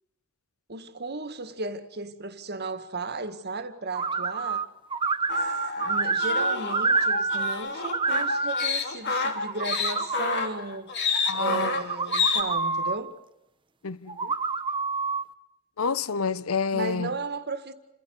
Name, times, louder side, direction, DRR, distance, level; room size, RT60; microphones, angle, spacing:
voice 1, 0.7-4.7 5.8-10.9 11.3-13.2 16.7-17.7, right 3 dB, 50° right, 1.9 m, -35 dB
sound 1, 3.9-4.6 4.9-7.5 7.8-8.7 9.2-10.2 11.1-13.0 14.1-15.2, right 4 dB, 25° right, 0.9 m, -27 dB
sound 2, 5.3-12.4, left 5 dB, 55° left, 3.3 m, -29 dB
voice 2, 11.3-11.7 13.8-14.3 15.8-17.1, left 5 dB, 90° left, 0.9 m, -28 dB
28.5 x 15.5 x 9.5 m
head